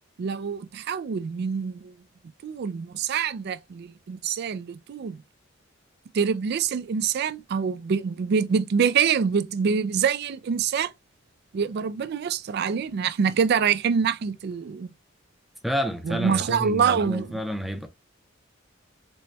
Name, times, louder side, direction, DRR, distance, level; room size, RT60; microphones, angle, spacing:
voice 1, 0.2-2.0 2.4-5.2 6.1-10.9 11.5-14.9 16.1-17.4, right 6 dB, 55° right, 0.3 m, -25 dB
voice 2, 15.6-17.9, equal, ahead, 0.5 m, -29 dB
4.1 x 2.2 x 3.1 m
head